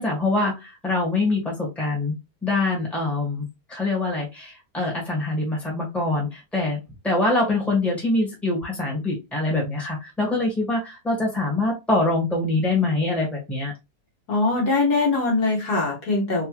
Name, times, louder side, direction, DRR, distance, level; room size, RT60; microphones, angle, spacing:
voice 1, 0.0-2.1 2.4-6.8 7.0-13.7, left 2 dB, ahead, -3 dB, 1.7 m, -24 dB
voice 2, 14.3-16.5, left 3 dB, 65° left, -1 dB, 1.8 m, -22 dB
3.5 x 3.0 x 3.1 m, 0.24 s
omnidirectional pair, 1.9 m